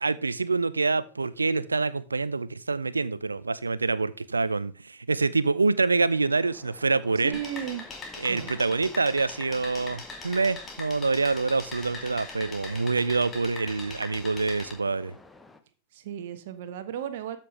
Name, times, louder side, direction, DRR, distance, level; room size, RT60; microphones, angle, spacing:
voice 1, 0.0-7.4 8.2-15.1, right 3 dB, 80° right, 0.5 m, -26 dB
Waves surf, 5.8-15.6, left 3 dB, 10° left, 0.9 m, -52 dB
voice 2, 7.2-7.8 8.3-8.5 15.9-17.4, right 10 dB, 55° right, 1.2 m, -34 dB
sound 1, 7.3-14.7, left 3 dB, 25° left, 2.4 m, -41 dB
13.5 x 5.8 x 3.3 m
figure-of-eight pair, 90°, 0 cm